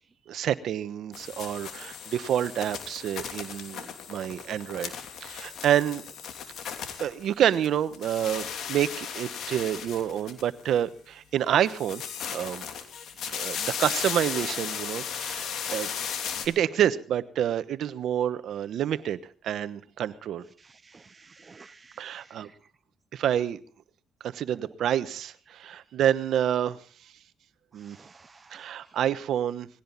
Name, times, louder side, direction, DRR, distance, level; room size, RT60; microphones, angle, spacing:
voice 1, 0.3-4.9 5.2-6.0 7.0-12.0 12.3-12.7 13.3-15.9 16.4-20.4 22.0-22.5 23.1-23.6 24.2-26.8 27.7-28.0 28.5-29.7, right 10 dB, 70° right, 1.1 m, -28 dB
sound 1, 1.1-7.7 7.9-10.8 11.6-16.5, left 7 dB, 75° left, 3.0 m, -36 dB
voice 2, 20.6-22.3 27.9-28.7, right 4 dB, 30° right, 0.7 m, -53 dB
20.0 x 17.0 x 4.1 m
cardioid pair, 90°, 0 cm